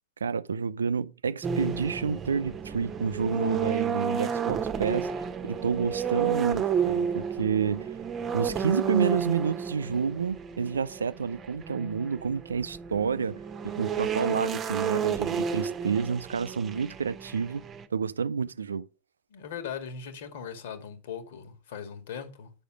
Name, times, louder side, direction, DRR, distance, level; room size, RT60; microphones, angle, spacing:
voice 1, 0.2-5.1 5.4-7.9 8.3-17.6 17.9-18.9, right 6 dB, 70° right, 0.5 m, -29 dB
sound 1, 1.4-17.9, right 7 dB, 25° right, 1.1 m, -31 dB
voice 2, 19.3-22.5, left 7 dB, 55° left, 2.0 m, -39 dB
9.9 x 6.5 x 6.3 m
figure-of-eight pair, 90°, 0 cm